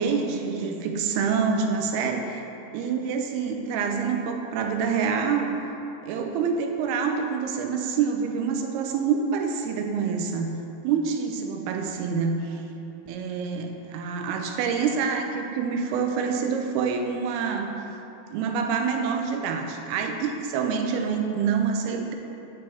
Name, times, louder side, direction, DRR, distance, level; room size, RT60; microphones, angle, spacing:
voice 1, 0.0-2.4 2.7-5.6 6.0-10.6 10.8-12.6 13.1-17.7 18.3-22.1, right 6 dB, 85° right, 4 dB, 2.6 m, -26 dB
8.3 x 7.7 x 3.4 m, 2.9 s
omnidirectional pair, 4.5 m